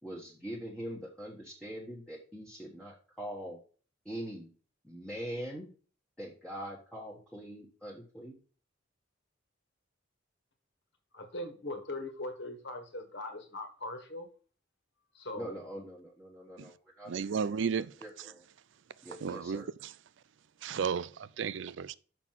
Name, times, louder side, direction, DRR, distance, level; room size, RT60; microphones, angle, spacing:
voice 1, 0.0-3.6 4.0-4.5 4.8-5.7 6.2-8.3 15.4-17.4 18.0-18.4 19.0-19.7, equal, 5° left, 1.2 m, -43 dB
voice 2, 11.1-14.3 15.1-15.6, left 2 dB, 60° left, 1.5 m, -40 dB
voice 3, 17.1-18.0 19.2-19.9 20.6-21.9, right 6 dB, 65° right, 0.4 m, -34 dB
6.1 x 6.0 x 5.7 m
head